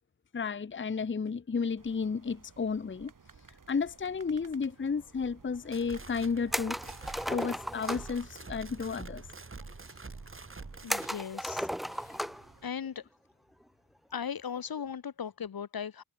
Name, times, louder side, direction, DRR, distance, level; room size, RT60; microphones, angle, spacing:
voice 1, 0.3-3.1 3.7-6.8 7.3-9.2, left 5 dB, 30° left, 0.7 m, -32 dB
sound 1, 1.8-12.7, right 5 dB, 55° right, 3.3 m, -57 dB
sound 2, 5.5-11.1, right 3 dB, 35° right, 2.4 m, -46 dB
sound 3, 6.5-8.2 10.9-12.5 12.9-13.0 14.6-14.9, equal, ahead, 0.3 m, -35 dB
voice 2, 10.8-12.2 12.6-13.0 14.1-16.0, left 7 dB, 65° left, 1.0 m, -38 dB
wide cardioid pair, 125°, 38 cm